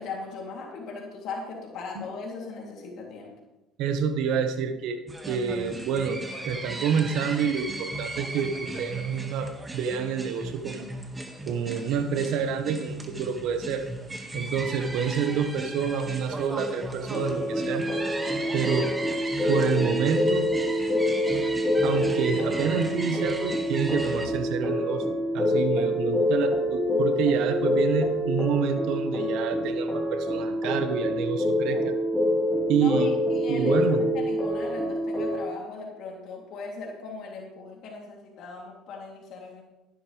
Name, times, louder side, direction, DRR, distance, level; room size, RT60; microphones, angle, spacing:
voice 1, 0.0-3.3 26.1-26.2 31.6-31.9 32.7-33.8 34.1-39.6, left 4 dB, 60° left, -2 dB, 3.1 m, -38 dB
voice 2, 3.8-10.9 11.5-13.9 14.3-17.9 18.5-18.9 19.5-20.5 21.8-25.0 25.3-32.0 32.7-33.1 33.5-34.1, right 7 dB, 70° right, 7 dB, 1.2 m, -28 dB
sound 1, 5.1-24.3, right 2 dB, 15° right, 1.9 m, -36 dB
sound 2, 17.1-35.5, left 1 dB, 15° left, 3.5 m, -26 dB
15.0 x 11.5 x 3.4 m, 0.96 s
supercardioid pair, 100°, 0 cm